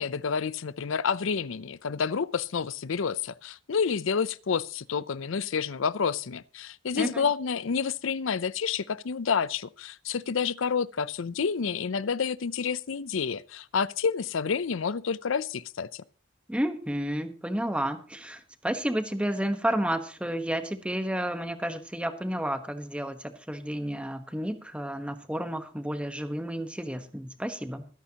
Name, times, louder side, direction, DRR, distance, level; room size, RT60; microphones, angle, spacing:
voice 1, 0.0-16.0, left 6 dB, 70° left, 0.5 m, -29 dB
voice 2, 16.5-27.9, right 1 dB, 5° right, 1.1 m, -31 dB
23.0 x 10.0 x 2.9 m
head